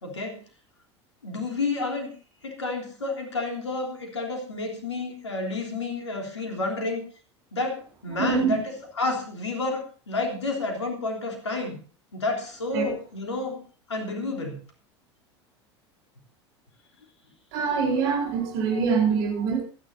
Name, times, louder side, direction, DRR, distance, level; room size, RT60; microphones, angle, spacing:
voice 1, 0.0-0.4 1.2-2.1 2.4-7.0 7.5-11.8 12.1-13.6 13.9-14.6, left 3 dB, 85° left, 2 dB, 3.3 m, -30 dB
voice 2, 8.1-8.6 12.7-12.9 17.5-19.6, right 5 dB, 60° right, 0 dB, 4.3 m, -24 dB
24.5 x 10.0 x 2.7 m, 0.37 s
figure-of-eight pair, 80°, 14 cm